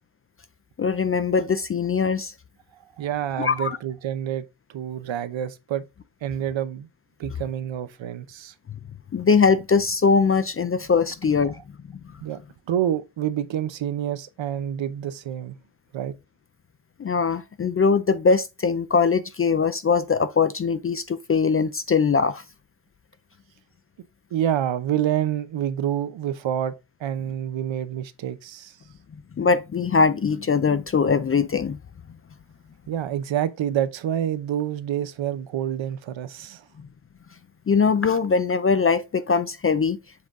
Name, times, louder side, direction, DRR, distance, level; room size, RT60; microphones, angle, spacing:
voice 1, 0.8-2.3 3.4-3.7 9.1-11.6 17.0-22.4 29.4-31.8 37.7-40.0, left 5 dB, 30° left, 0.4 m, -21 dB
voice 2, 3.0-4.4 4.7-5.8 6.2-6.9 7.2-8.5 12.2-12.4 12.7-15.6 15.9-16.1 24.3-26.7 27.0-28.8 32.9-36.6, right 10 dB, 65° right, 0.8 m, -27 dB
7.5 x 3.9 x 3.6 m
wide cardioid pair, 135°, 48 cm